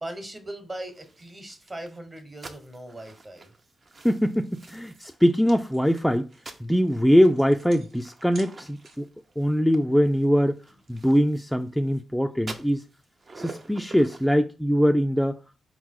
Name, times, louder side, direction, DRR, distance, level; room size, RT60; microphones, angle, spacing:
voice 1, 0.0-3.5, right 1 dB, 30° right, 1.1 m, -39 dB
sound 1, 0.9-5.3 5.7-12.0 12.4-14.3, right 3 dB, 45° right, 0.7 m, -47 dB
voice 2, 4.0-6.3 6.6-9.1 9.4-10.6 10.9-12.8 13.4-15.4, equal, ahead, 0.3 m, -22 dB
sound 2, 4.4-9.2, right 3 dB, 70° right, 1.0 m, -52 dB
4.3 x 3.0 x 3.7 m
cardioid pair, 70°, 0 cm